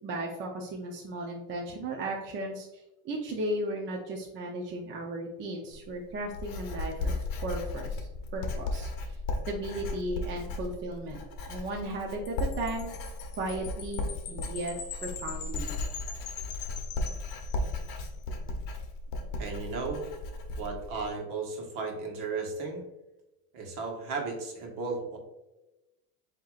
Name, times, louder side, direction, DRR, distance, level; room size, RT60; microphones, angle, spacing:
voice 1, 0.0-9.2 9.5-12.9 13.4-14.7 15.0-15.7, right 1 dB, 25° right, 0 dB, 0.5 m, -36 dB
Writing, 5.7-21.1, left 2 dB, 45° left, 1.0 m, -36 dB
Wind chime, 12.2-17.9, left 7 dB, 25° left, 0.3 m, -43 dB
voice 2, 19.4-20.1 20.6-22.9 23.5-25.2, right 4 dB, 50° right, 1 dB, 1.4 m, -35 dB
7.7 x 2.9 x 2.4 m, 0.99 s
supercardioid pair, 135°, 47 cm